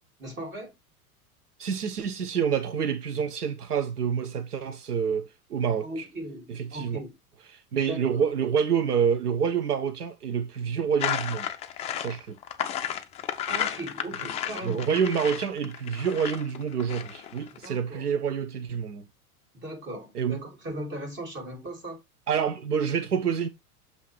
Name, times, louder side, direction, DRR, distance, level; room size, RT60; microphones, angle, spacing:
voice 1, 0.2-0.7 5.8-7.1 7.9-8.2 13.5-14.9 17.6-18.1 19.5-22.0, right 1 dB, 25° right, 2.7 m, -38 dB
voice 2, 1.6-5.9 6.5-7.0 7.5-11.5 12.0-12.4 14.6-19.0 20.1-20.4 22.3-23.5, right 7 dB, 85° right, 0.7 m, -27 dB
sound 1, 11.0-17.7, left 10 dB, 15° left, 0.4 m, -33 dB
7.2 x 2.7 x 4.7 m
figure-of-eight pair, 90°, 45 cm